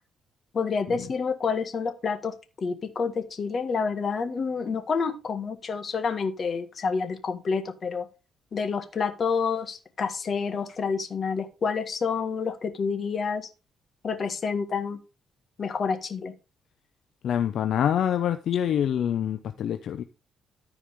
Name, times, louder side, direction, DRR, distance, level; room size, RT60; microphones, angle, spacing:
voice 1, 0.5-8.0 8.5-13.5 14.0-15.0 15.6-16.3, left 5 dB, 45° left, 1.7 m, -28 dB
voice 2, 17.2-20.0, left 9 dB, 70° left, 0.6 m, -26 dB
14.0 x 4.9 x 3.5 m
cardioid pair, 90°, 0 cm